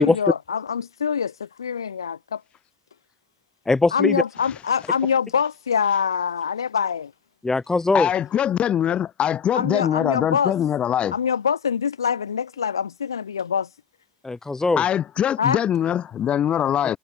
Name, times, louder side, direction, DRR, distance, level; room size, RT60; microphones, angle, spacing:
voice 1, 0.0-2.4 3.9-7.1 9.5-10.5 11.1-13.7 15.4-15.6, left 7 dB, 90° left, 0.8 m, -24 dB
voice 2, 3.7-4.2 7.4-8.1 14.2-14.8, left 3 dB, 20° left, 1.3 m, -20 dB
voice 3, 7.9-11.1 14.8-17.0, left 10 dB, 55° left, 7.8 m, -22 dB
figure-of-eight pair, 45°, 2 cm